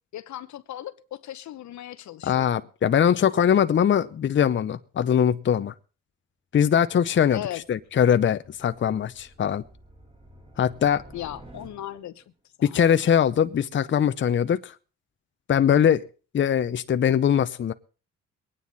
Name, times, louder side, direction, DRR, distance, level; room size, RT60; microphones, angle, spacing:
voice 1, 0.1-2.7 7.3-7.6 11.1-12.2 12.6-12.8, left 12 dB, 70° left, 0.9 m, -37 dB
voice 2, 2.2-5.7 6.5-7.4 7.7-9.6 10.6-11.0 12.6-14.7 15.5-16.0 16.3-17.7, left 8 dB, 40° left, 0.7 m, -21 dB
sound 1, 7.5-12.2, right 1 dB, 20° right, 3.1 m, -51 dB
22.5 x 9.6 x 4.1 m
cardioid pair, 90°, 30 cm